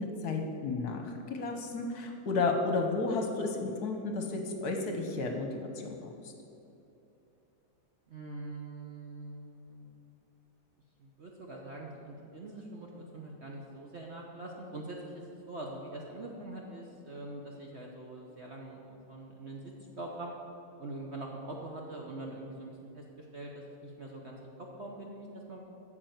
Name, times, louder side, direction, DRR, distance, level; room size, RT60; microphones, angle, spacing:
voice 1, 0.0-5.5 5.8-6.0 6.2-6.3, left 3 dB, 60° left, 4 dB, 1.3 m, -32 dB
voice 2, 8.1-9.9 11.0-18.8 19.1-20.3 20.8-25.6, right 2 dB, 45° right, -1 dB, 0.9 m, -43 dB
8.7 x 6.3 x 7.9 m, 2.9 s
omnidirectional pair, 2.0 m